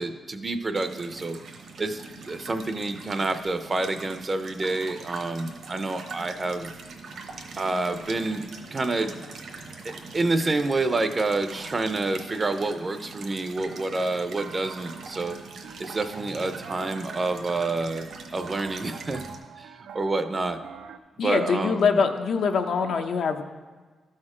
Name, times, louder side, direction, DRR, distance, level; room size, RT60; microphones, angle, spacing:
voice 1, 0.0-1.4 1.8-6.7 7.6-8.4 8.7-9.2 9.8-15.4 15.8-19.2 19.6-20.6 21.2-22.0, right 2 dB, 30° right, 9 dB, 0.5 m, -28 dB
sound 1, 0.7-19.4, right 4 dB, 70° right, 1.0 m, -42 dB
sound 2, 13.7-21.0, right 6 dB, 85° right, 0.4 m, -44 dB
voice 2, 21.2-23.4, left 5 dB, 70° left, 6 dB, 0.6 m, -24 dB
12.5 x 4.3 x 4.9 m, 1.4 s
cardioid pair, 125°, 0 cm